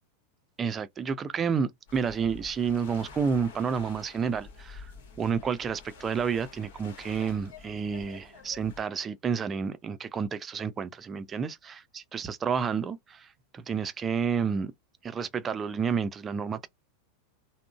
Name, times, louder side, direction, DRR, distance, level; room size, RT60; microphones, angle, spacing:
voice 1, 0.6-14.7 15.0-16.7, right 6 dB, 25° right, 0.5 m, -30 dB
sound 1, 1.9-8.8, left 4 dB, 60° left, 1.2 m, -48 dB
3.6 x 2.1 x 2.3 m
figure-of-eight pair, 90°, 0 cm